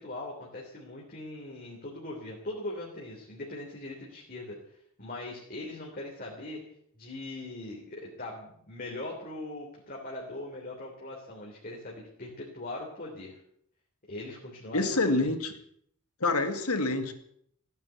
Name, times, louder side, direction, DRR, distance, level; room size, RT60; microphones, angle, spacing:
voice 1, 0.0-4.6 5.0-6.6 7.0-13.4 14.1-15.3, left 2 dB, 40° left, -2 dB, 3.2 m, -40 dB
voice 2, 14.7-15.5 16.2-17.1, left 2 dB, 85° left, 8 dB, 2.2 m, -27 dB
16.0 x 9.5 x 9.2 m, 0.69 s
head